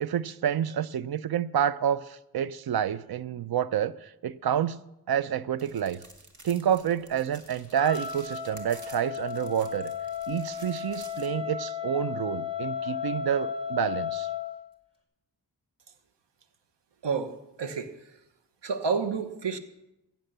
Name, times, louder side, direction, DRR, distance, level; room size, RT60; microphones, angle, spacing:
voice 1, 0.0-4.8 5.1-6.0 6.4-9.9 10.3-14.3, right 9 dB, 60° right, 0.5 m, -28 dB
sound 1, 5.6-11.3, right 2 dB, 45° right, 2.2 m, -52 dB
Wind instrument woodwind instrument, 7.7-14.5, left 8 dB, 15° right, 2.6 m, -34 dB
voice 2, 17.0-17.9 18.6-19.6, right 5 dB, 80° right, 1.1 m, -30 dB
16.0 x 7.2 x 6.7 m
cardioid pair, 70°, 42 cm